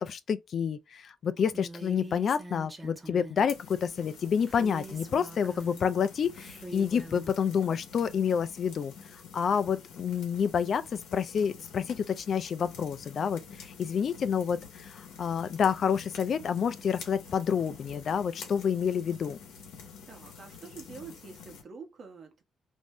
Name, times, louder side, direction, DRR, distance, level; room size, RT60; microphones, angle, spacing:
voice 1, 0.0-8.9 9.3-19.4, left 7 dB, 55° left, 0.3 m, -29 dB
Female speech woman speaking, 1.5-3.5 4.5-5.9 6.3-7.3, right 1 dB, 20° right, 0.7 m, -43 dB
sound 1, 3.5-21.6, left 6 dB, 85° left, 0.8 m, -48 dB
voice 2, 20.1-22.4, right 5 dB, 50° right, 0.9 m, -46 dB
2.6 x 2.1 x 3.5 m
cardioid pair, 90°, 0 cm